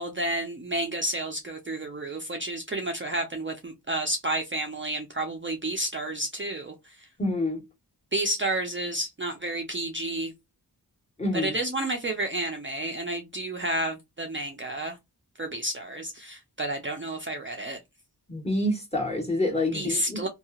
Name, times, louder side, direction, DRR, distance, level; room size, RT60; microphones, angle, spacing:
voice 1, 0.0-7.1 8.1-10.3 11.3-15.0 15.4-17.8 19.7-20.3, right 1 dB, 30° right, 0.6 m, -31 dB
voice 2, 7.2-7.6 11.2-11.5 18.3-20.3, left 1 dB, 15° left, 1.4 m, -27 dB
2.8 x 2.3 x 2.3 m
wide cardioid pair, 55°, 41 cm